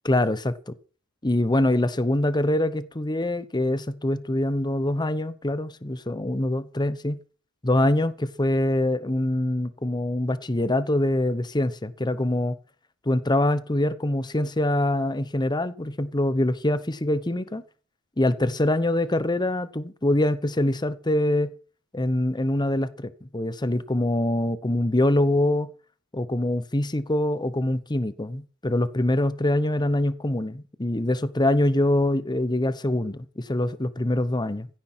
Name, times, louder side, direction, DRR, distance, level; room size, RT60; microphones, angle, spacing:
voice 1, 0.0-0.7 1.2-7.2 7.6-12.6 13.0-17.6 18.2-21.5 21.9-25.7 26.1-34.7, left 1 dB, 20° left, 1.0 m, -24 dB
16.0 x 10.5 x 6.1 m
head